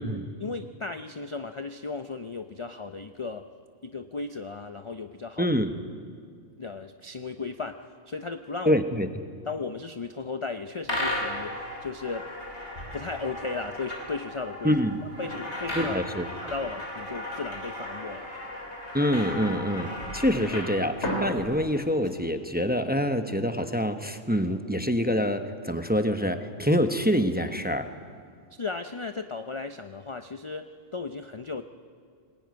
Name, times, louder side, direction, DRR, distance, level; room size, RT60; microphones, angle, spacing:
voice 1, 0.4-3.5 3.8-5.6 6.6-8.8 9.5-12.3 12.9-14.8 15.2-16.0 16.4-18.3 28.6-30.7 30.9-31.6, left 4 dB, 35° left, 8 dB, 0.5 m, -35 dB
voice 2, 5.4-5.7 8.6-9.1 14.6-15.0 15.7-16.3 18.9-27.9, equal, 10° right, 7 dB, 0.8 m, -26 dB
sound 1, 10.8-22.1, left 1 dB, 60° left, 3.7 m, -35 dB
20.0 x 20.0 x 9.5 m, 2.2 s
omnidirectional pair, 1.3 m